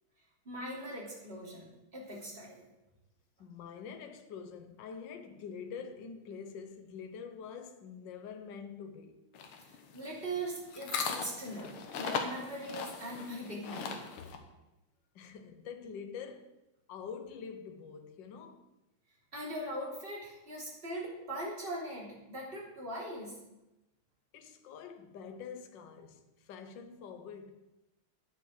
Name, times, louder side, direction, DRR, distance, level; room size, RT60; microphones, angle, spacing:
voice 1, 0.4-2.6 9.9-14.0 19.3-23.3, right 1 dB, 25° right, 3.4 m, -40 dB
voice 2, 3.4-9.2 15.1-16.5 16.9-18.7 24.3-27.7, left 6 dB, 60° left, 1.6 m, -46 dB
sound 1, 9.4-14.4, left 5 dB, 80° left, 2.0 m, -38 dB
9.9 x 7.0 x 6.5 m
omnidirectional pair, 2.3 m